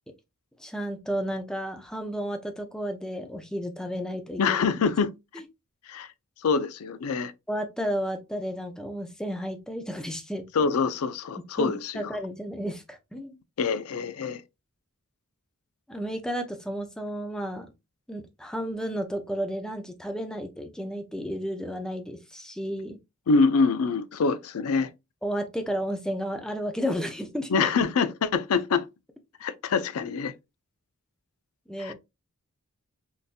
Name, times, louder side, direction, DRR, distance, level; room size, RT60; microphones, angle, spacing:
voice 1, 0.6-4.6 7.5-10.7 11.6-13.3 15.9-17.7 18.1-23.0 25.2-27.7 31.7-31.9, equal, 5° left, 0.5 m, -32 dB
voice 2, 4.4-5.1 5.9-6.1 6.4-7.3 10.5-12.1 13.6-14.4 23.3-24.9 27.5-28.8 29.4-30.3 31.8-31.9, left 4 dB, 70° left, 0.4 m, -25 dB
3.7 x 2.6 x 2.4 m
head